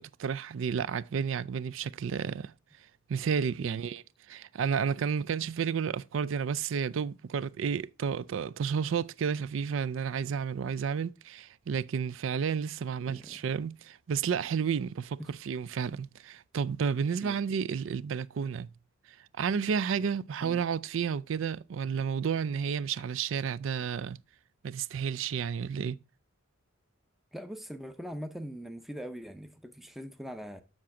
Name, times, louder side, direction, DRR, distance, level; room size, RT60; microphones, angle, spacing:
voice 1, 0.0-2.5 3.1-4.0 4.3-18.7 19.4-24.2 24.6-26.0, right 6 dB, 65° right, 0.4 m, -31 dB
voice 2, 13.1-13.4 15.2-15.3 17.2-17.4 20.4-20.6 27.3-30.6, equal, ahead, 0.5 m, -42 dB
7.5 x 6.0 x 5.8 m
head